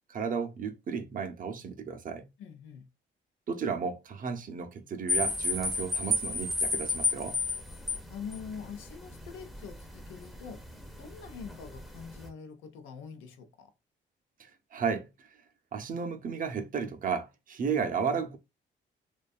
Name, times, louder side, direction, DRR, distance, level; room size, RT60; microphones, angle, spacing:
voice 1, 0.1-2.3 3.5-7.4 14.4-15.3 15.7-18.4, right 6 dB, 45° right, 0.5 m, -33 dB
voice 2, 2.4-2.9 8.1-10.7 11.0-13.7, left 6 dB, 85° left, 0.6 m, -44 dB
sound 1, 5.1-12.3, left 2 dB, ahead, 0.6 m, -33 dB
2.6 x 2.3 x 2.3 m
cardioid pair, 90°, 20 cm